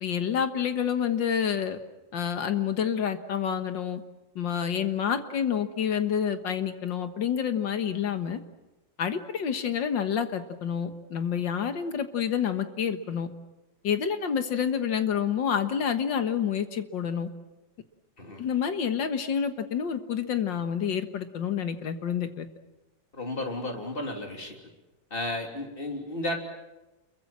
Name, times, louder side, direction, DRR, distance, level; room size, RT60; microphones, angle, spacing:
voice 1, 0.0-1.8 2.1-4.0 4.4-8.4 9.0-13.3 13.8-17.3 18.4-22.5, left 8 dB, 80° left, 9 dB, 2.1 m, -28 dB
voice 2, 23.1-24.6 25.1-26.4, left 1 dB, 30° left, 2 dB, 3.4 m, -33 dB
28.0 x 22.5 x 7.5 m, 1.0 s
omnidirectional pair, 2.0 m